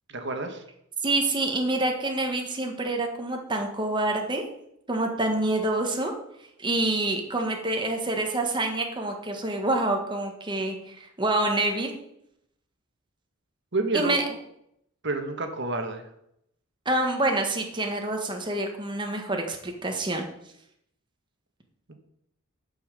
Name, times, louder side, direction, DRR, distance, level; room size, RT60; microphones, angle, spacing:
voice 1, 0.1-0.6 13.7-14.1 15.0-16.0 21.9-22.0, right 3 dB, 55° right, 6 dB, 1.5 m, -29 dB
voice 2, 1.0-4.4 4.9-6.1 6.6-11.9 13.9-14.2 16.8-20.3, right 2 dB, 20° right, 3 dB, 1.5 m, -27 dB
11.0 x 5.7 x 6.7 m, 0.77 s
head